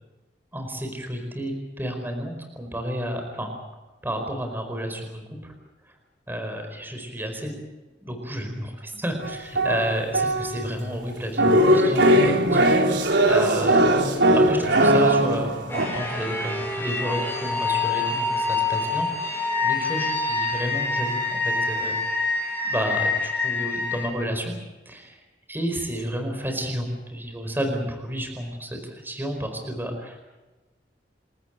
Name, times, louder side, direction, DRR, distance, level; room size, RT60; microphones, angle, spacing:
voice 1, 0.5-3.5 4.0-5.5 5.8-5.9 6.3-7.5 8.1-13.8 14.3-22.2 22.6-24.6 24.8-25.2 25.5-30.2, equal, 10° right, 4 dB, 4.8 m, -31 dB
sound 1, 9.2-10.7 11.4-15.9, right 1 dB, 80° right, 3.8 m, -19 dB
sound 2, 15.7-24.1, left 3 dB, 15° left, 7.5 m, -26 dB
29.0 x 14.0 x 9.0 m, 1.1 s
head